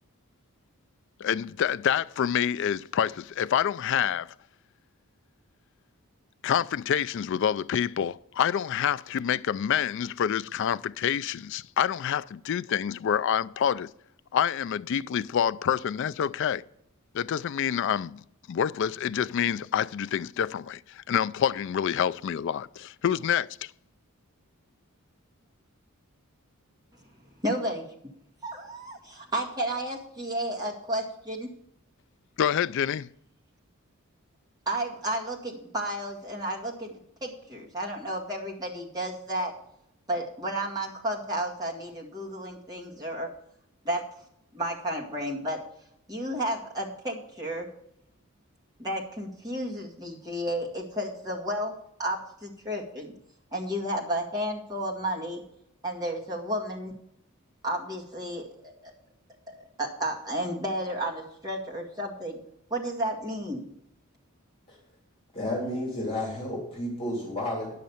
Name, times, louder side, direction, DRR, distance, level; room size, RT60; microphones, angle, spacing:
voice 1, 1.2-4.3 6.4-13.9 14.3-16.6 17.1-23.7 32.4-33.1, left 8 dB, 55° left, 0.3 m, -27 dB
voice 2, 27.4-27.9 28.4-31.5 34.7-39.5 40.1-43.3 43.8-44.0 44.5-45.6 46.1-47.7 48.8-51.7 52.0-53.1 53.5-55.4 55.8-56.9 57.6-58.9 59.5-62.4 62.7-63.7, right 1 dB, 20° right, 2.0 m, -32 dB
voice 3, 65.3-67.7, left 1 dB, 25° left, 2.8 m, -31 dB
10.0 x 6.5 x 7.1 m
head